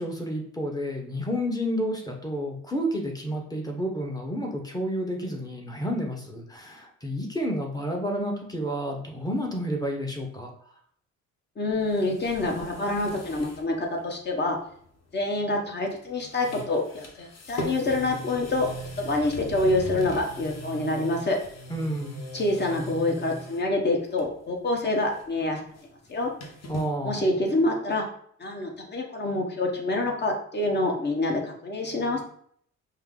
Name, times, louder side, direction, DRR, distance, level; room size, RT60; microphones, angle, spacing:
voice 1, 0.0-10.5 21.7-22.2 26.7-27.2, equal, 15° left, 1 dB, 1.0 m, -30 dB
voice 2, 11.6-14.6 15.1-18.7 19.0-21.4 22.3-25.6 26.1-26.3 27.0-28.1 28.4-32.2, left 2 dB, 35° left, 1 dB, 1.2 m, -26 dB
sound 1, 11.7-13.7 14.0-14.1 15.8-16.0 16.3-23.7 24.1-24.5 24.8-26.9, left 1 dB, 55° left, 1.1 m, -40 dB
5.4 x 2.1 x 3.8 m, 0.62 s
cardioid pair, 90°, 30 cm